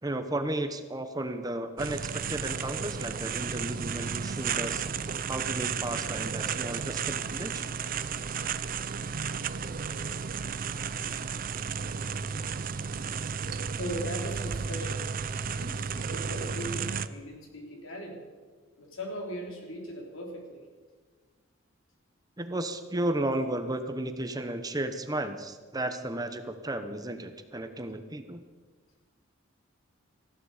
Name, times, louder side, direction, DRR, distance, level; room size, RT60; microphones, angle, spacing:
voice 1, 0.0-4.8 5.3-7.7 11.0-11.1 22.4-28.4, right 1 dB, 20° right, 8 dB, 1.0 m, -34 dB
sound 1, 1.8-17.1, right 6 dB, 45° right, 0.6 m, -33 dB
voice 2, 13.8-18.2 18.8-20.6, equal, 90° left, 0 dB, 3.8 m, -39 dB
19.0 x 15.0 x 5.0 m, 1.4 s
head